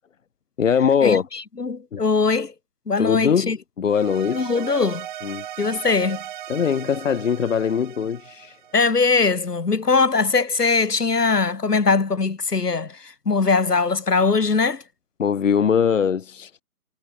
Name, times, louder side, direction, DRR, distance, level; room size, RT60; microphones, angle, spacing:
voice 1, 0.6-1.2 1.9-2.0 3.0-4.5 5.2-5.4 6.5-8.6 15.2-16.5, left 7 dB, 55° left, 2.2 m, -21 dB
voice 2, 1.6-2.5 2.9-3.6 4.3-5.1 5.6-6.2 8.7-13.0 13.2-14.8, left 4 dB, 90° left, 4.8 m, -21 dB
sound 1, 3.9-9.2, right 12 dB, 30° right, 6.0 m, -38 dB
hypercardioid pair, 160°, 46 cm